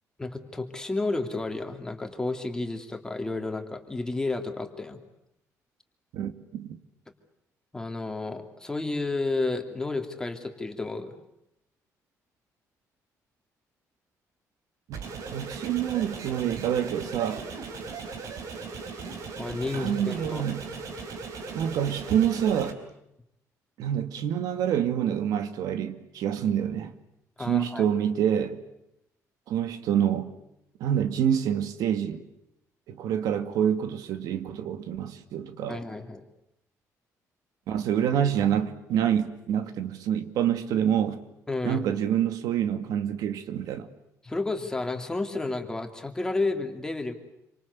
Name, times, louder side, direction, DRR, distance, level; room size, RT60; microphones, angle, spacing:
voice 1, 0.2-5.0 7.7-11.2 17.8-17.9 19.4-20.4 27.4-27.9 35.6-36.2 41.5-41.8 44.2-47.1, left 2 dB, 10° left, 2.9 m, -31 dB
voice 2, 6.1-6.7 14.9-15.0 15.3-17.4 19.7-20.6 21.5-22.8 23.8-26.9 27.4-28.6 29.5-30.3 30.8-32.2 32.9-35.8 37.7-41.2 41.6-43.9, right 9 dB, 80° right, 2.3 m, -27 dB
sound 1, 14.9-22.7, right 4 dB, 65° right, 4.5 m, -38 dB
27.5 x 26.0 x 8.4 m
cardioid pair, 155°, 6 cm